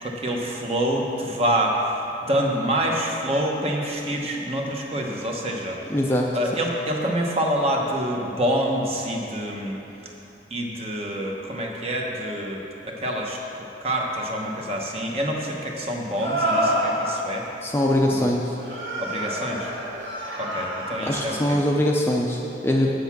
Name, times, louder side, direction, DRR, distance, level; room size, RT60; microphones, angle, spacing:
voice 1, 0.0-1.8 2.3-5.8 6.3-9.8 10.5-17.4 18.1-18.3 19.0-19.7 20.4-21.6, equal, 35° right, 0 dB, 1.0 m, -26 dB
voice 2, 5.9-6.3 17.6-18.6 21.0-22.9, left 1 dB, 10° left, -1 dB, 0.5 m, -22 dB
sound 1, 13.0-13.1 16.2-17.4 18.6-21.2, equal, 85° right, 1.8 m, -27 dB
8.3 x 8.0 x 6.0 m, 2.9 s
head